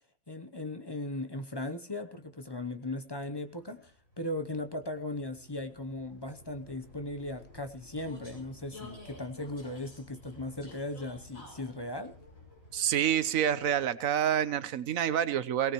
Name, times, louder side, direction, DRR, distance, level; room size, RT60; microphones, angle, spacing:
voice 1, 0.3-12.1, left 2 dB, 20° left, 8 dB, 0.7 m, -38 dB
Vehicle, 2.3-14.2, left 2 dB, 75° left, 7.6 m, -53 dB
voice 2, 12.7-15.7, right 10 dB, 80° right, 14 dB, 1.2 m, -28 dB
18.5 x 17.5 x 3.1 m, 0.42 s
omnidirectional pair, 1.4 m